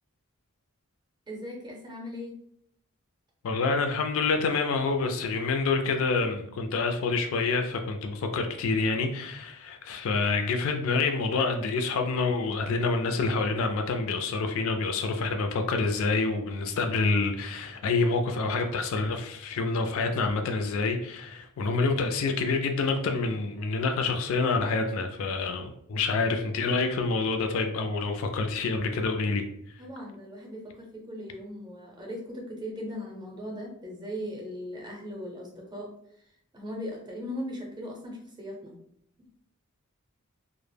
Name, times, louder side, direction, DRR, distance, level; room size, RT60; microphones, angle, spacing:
voice 1, 1.3-2.4 29.8-35.9 36.5-38.7 39.2-39.3, equal, 20° right, 0.5 m, -38 dB
voice 2, 3.4-29.4, left 3 dB, 65° left, 0.3 m, -27 dB
2.0 x 2.0 x 3.2 m
head